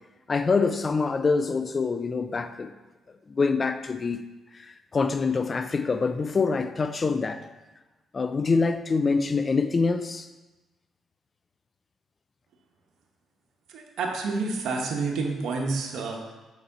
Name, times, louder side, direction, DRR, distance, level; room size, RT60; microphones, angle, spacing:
voice 1, 0.3-2.7 3.3-4.2 4.5-7.4 8.1-10.3, left 4 dB, 35° left, 10 dB, 0.4 m, -25 dB
voice 2, 13.7-16.3, right 3 dB, 75° right, 0 dB, 1.0 m, -29 dB
6.7 x 4.1 x 4.0 m, 1.1 s
cardioid pair, 90°, 0 cm